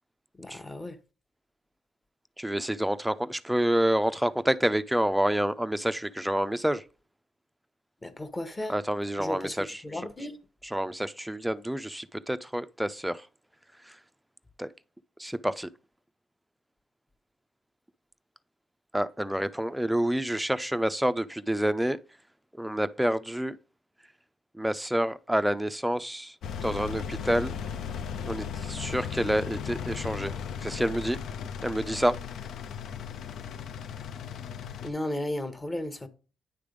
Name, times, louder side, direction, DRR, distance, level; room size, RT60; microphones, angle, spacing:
voice 1, 0.4-1.0 8.0-8.7 9.2-10.4 34.8-36.1, left 1 dB, 20° left, 1.1 m, -35 dB
voice 2, 2.4-6.8 8.7-9.8 10.6-13.2 14.6-14.7 15.2-15.7 18.9-22.0 22.6-23.6 24.5-26.3 26.6-27.6 28.3-31.2 31.6-32.2, right 1 dB, 5° right, 0.5 m, -28 dB
Engine, 26.4-34.9, left 7 dB, 70° left, 0.6 m, -36 dB
9.7 x 3.4 x 5.1 m
cardioid pair, 90°, 0 cm